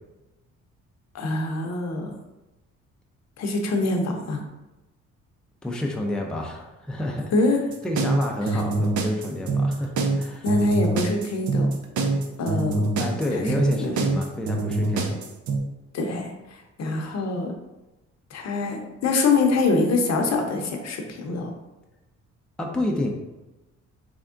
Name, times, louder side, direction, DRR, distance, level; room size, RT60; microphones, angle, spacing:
voice 1, 1.1-2.1 3.4-4.4 7.3-7.6 8.5-8.6 10.4-11.7 12.4-12.8 13.3-13.9 15.9-17.5 18.3-21.5, left 3 dB, 60° left, 3 dB, 0.7 m, -24 dB
voice 2, 5.6-7.3 7.8-10.4 13.0-15.2 22.6-23.1, left 1 dB, 5° left, 0 dB, 0.5 m, -29 dB
sound 1, 7.7-15.6, right 3 dB, 70° right, 0.6 m, -24 dB
3.5 x 3.4 x 2.5 m, 1.0 s
cardioid pair, 90°, 30 cm